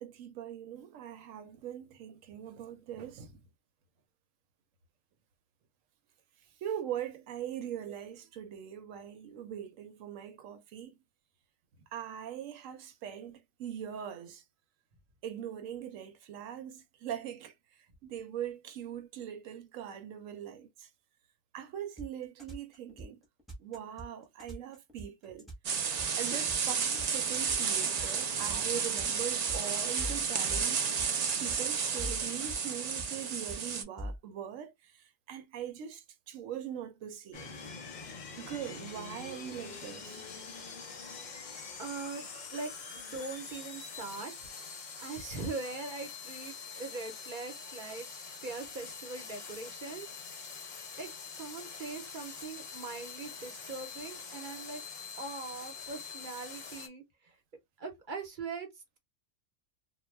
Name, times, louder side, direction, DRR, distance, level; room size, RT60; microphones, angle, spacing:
voice 1, 0.0-3.4 6.6-10.9 11.9-14.4 15.2-17.5 18.0-20.9 21.5-23.2 23.6-25.5 26.2-34.9 35.3-37.5 38.4-40.2 42.3-42.4, right 10 dB, 90° right, 1.0 m, -41 dB
sound 1, 22.0-34.2, equal, ahead, 0.8 m, -42 dB
sound 2, 25.6-33.8, right 6 dB, 70° right, 0.4 m, -32 dB
sound 3, 37.3-56.9, left 5 dB, 50° left, 0.6 m, -45 dB
voice 2, 41.8-44.3 45.0-48.1 48.4-50.1 51.0-51.1 51.4-54.8 55.2-57.0 57.8-58.7, right 4 dB, 45° right, 0.9 m, -41 dB
2.3 x 2.1 x 3.1 m
omnidirectional pair, 1.3 m